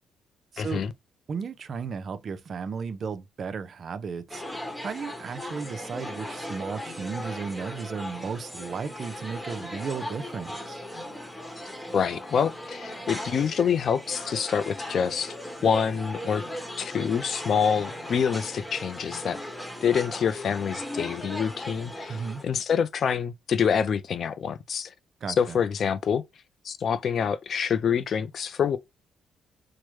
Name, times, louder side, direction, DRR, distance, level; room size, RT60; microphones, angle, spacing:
voice 1, 0.6-0.9 11.9-15.4 15.6-16.4 16.8-19.4 19.8-24.9 25.4-26.2 26.6-28.8, left 7 dB, 55° left, 0.4 m, -26 dB
voice 2, 1.3-10.8 22.1-22.4 25.2-25.6, right 5 dB, 50° right, 0.5 m, -34 dB
sound 1, 4.3-22.4, left 1 dB, 10° left, 1.1 m, -38 dB
4.7 x 2.1 x 3.1 m
cardioid pair, 90°, 0 cm